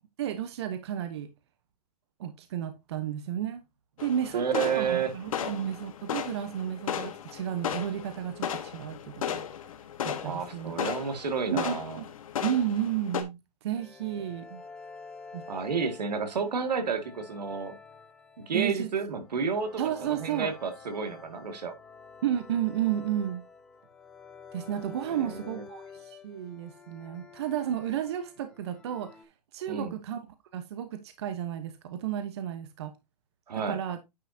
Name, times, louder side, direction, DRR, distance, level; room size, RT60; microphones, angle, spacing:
voice 1, 0.2-1.3 2.2-3.6 4.0-9.4 10.0-10.7 11.5-12.0 12.4-14.6 15.3-15.5 18.5-18.9 19.8-20.5 22.2-23.4 24.5-29.1 29.5-30.3 30.5-32.9 33.5-34.0, right 10 dB, 40° right, 0.9 m, -32 dB
sound 1, 4.0-13.2, left 9 dB, 55° left, 1.3 m, -36 dB
voice 2, 4.3-5.1 10.2-12.0 15.5-17.8 18.4-21.8 25.1-25.6 29.7-30.0 33.5-33.8, right 5 dB, 85° right, 2.1 m, -31 dB
sound 2, 13.8-29.2, left 5 dB, 5° left, 0.4 m, -49 dB
9.6 x 5.4 x 2.7 m
hypercardioid pair, 165°, 20 cm